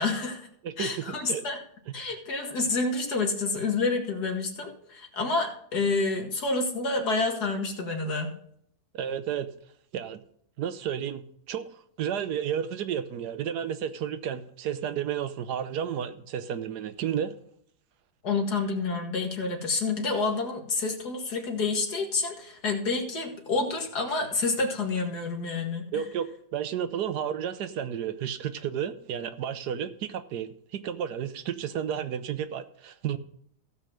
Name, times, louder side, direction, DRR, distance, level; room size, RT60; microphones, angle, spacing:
voice 1, 0.0-0.5 0.8-1.6 1.9-8.3 18.2-26.0, left 3 dB, 70° left, 2.5 m, -28 dB
voice 2, 8.9-9.5 9.9-10.2 10.6-11.2 11.5-11.7 12.0-17.4 25.9-33.2, right 9 dB, 80° right, 1.3 m, -32 dB
16.0 x 5.5 x 6.3 m
omnidirectional pair, 1.8 m